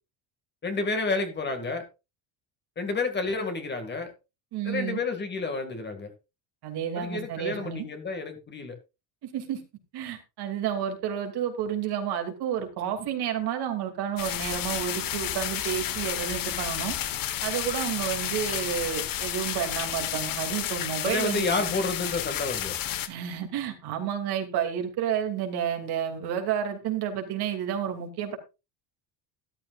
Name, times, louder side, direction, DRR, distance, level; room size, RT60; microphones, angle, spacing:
voice 1, 0.6-1.9 2.8-4.1 4.6-6.1 7.0-8.8 21.0-22.8, left 3 dB, 25° left, 6 dB, 2.2 m, -30 dB
voice 2, 4.5-5.0 6.6-7.8 9.2-9.6 9.9-16.9 17.4-21.7 23.1-28.4, right 9 dB, 60° right, 4 dB, 2.8 m, -30 dB
sound 1, 14.2-23.1, left 11 dB, 50° left, 1.5 m, -31 dB
13.5 x 12.0 x 2.5 m, 0.27 s
cardioid pair, 145°, 44 cm